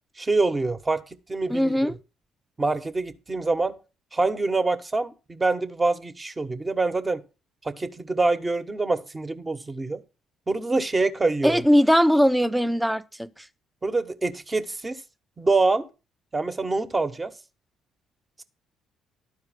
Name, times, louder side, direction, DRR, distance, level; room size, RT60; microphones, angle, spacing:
voice 1, 0.2-1.0 1.3-2.0 2.6-3.7 4.1-7.2 7.6-10.0 10.5-11.6 13.8-15.0 15.4-15.8 16.3-17.3, right 3 dB, 25° right, 1.3 m, -25 dB
voice 2, 1.5-1.9 11.4-13.3, equal, 5° right, 0.8 m, -20 dB
12.0 x 4.7 x 7.5 m
hypercardioid pair, 55°, 0 cm